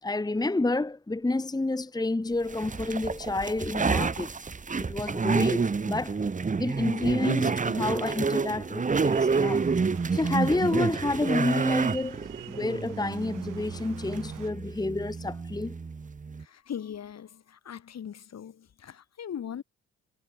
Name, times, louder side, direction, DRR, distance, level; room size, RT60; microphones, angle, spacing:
voice 1, 0.0-4.3 4.8-6.2 6.6-9.7 10.1-12.2 12.5-15.7, left 2 dB, 10° left, 1.2 m, -29 dB
sound 1, 2.5-16.4, right 4 dB, 25° right, 1.1 m, -29 dB
sound 2, 9.0-14.5, right 17 dB, 75° right, 6.3 m, -47 dB
voice 2, 16.4-19.6, left 8 dB, 50° left, 3.0 m, -40 dB
hypercardioid pair, 50°, 33 cm